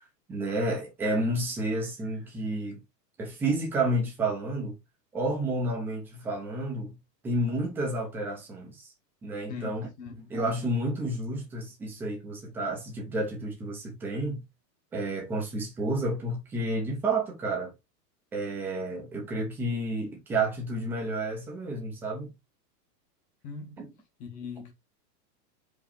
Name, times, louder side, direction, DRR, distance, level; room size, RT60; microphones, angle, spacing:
voice 1, 0.3-2.8 3.2-4.8 5.1-7.0 7.2-8.9 9.2-9.9 10.3-14.4 14.9-17.7 18.3-22.3 23.8-23.9, right 2 dB, 5° right, 0.8 m, -30 dB
voice 2, 9.5-10.2 23.4-23.9 24.2-24.7, left 5 dB, 15° left, 1.1 m, -40 dB
5.1 x 4.2 x 5.1 m
supercardioid pair, 180°, 49 cm